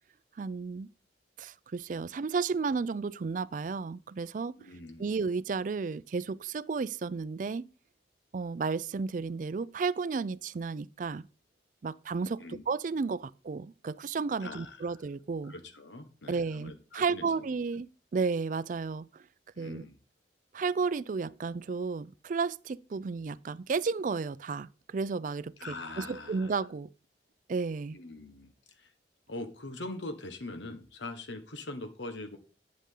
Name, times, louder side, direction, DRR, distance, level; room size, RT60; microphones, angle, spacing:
voice 1, 0.4-0.9 1.4-4.5 5.0-7.7 8.3-11.3 11.8-15.5 16.3-19.2 19.6-19.8 20.5-26.9 27.5-28.0, right 4 dB, 45° right, 0.4 m, -33 dB
voice 2, 4.6-5.1 12.4-12.7 14.4-15.0 15.4-17.5 19.5-20.0 25.6-26.6 27.9-28.9 29.3-32.4, left 2 dB, 90° left, 1.3 m, -42 dB
8.6 x 8.4 x 3.8 m
head